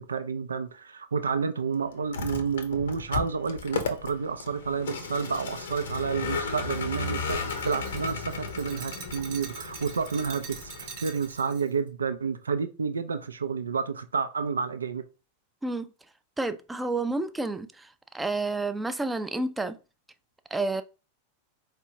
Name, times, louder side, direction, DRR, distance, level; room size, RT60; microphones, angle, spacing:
voice 1, 0.0-15.0, right 5 dB, 70° right, 0.4 m, -30 dB
Vehicle, 2.0-11.4, left 4 dB, 65° left, 0.8 m, -35 dB
Glass, 5.3-11.7, right 7 dB, 50° right, 0.9 m, -45 dB
voice 2, 16.4-17.9 18.1-19.8 20.5-20.8, right 2 dB, 10° right, 0.4 m, -29 dB
4.6 x 3.3 x 2.8 m
figure-of-eight pair, 90°, 0 cm